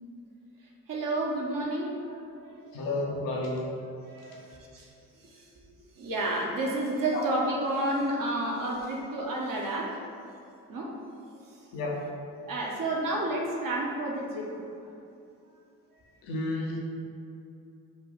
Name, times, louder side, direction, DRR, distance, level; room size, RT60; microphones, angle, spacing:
voice 1, 0.9-2.6 4.0-4.9 5.2-5.6 6.0-10.0 10.7-11.0 11.5-11.7 12.4-14.5 15.9-16.0, right 1 dB, 50° right, -3 dB, 1.4 m, -31 dB
voice 2, 2.7-3.7 7.1-7.2 11.7-12.0 16.2-16.8, left 2 dB, 85° left, -3 dB, 1.1 m, -31 dB
7.1 x 2.5 x 5.5 m, 2.6 s
hypercardioid pair, 45°, 41 cm